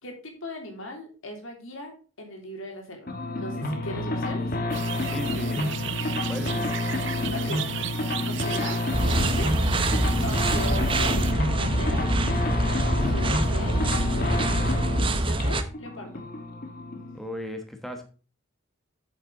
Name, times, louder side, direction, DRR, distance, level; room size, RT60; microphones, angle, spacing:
voice 1, 0.0-3.1 3.3-4.5 7.3-7.6 8.3-8.8 9.1-9.5 10.2-11.2 11.6-12.0 12.8-14.4 14.9-16.1, left 1 dB, 75° left, 3 dB, 3.1 m, -38 dB
sound 1, 3.1-17.2, left 2 dB, 45° left, 1.5 m, -29 dB
sound 2, 4.7-11.3, right 11 dB, 60° right, 0.6 m, -36 dB
voice 2, 5.0-6.7 17.1-18.0, equal, ahead, 5 dB, 1.2 m, -37 dB
sound 3, 8.9-15.6, right 1 dB, 25° right, 0.8 m, -25 dB
8.3 x 7.6 x 3.9 m, 0.36 s
head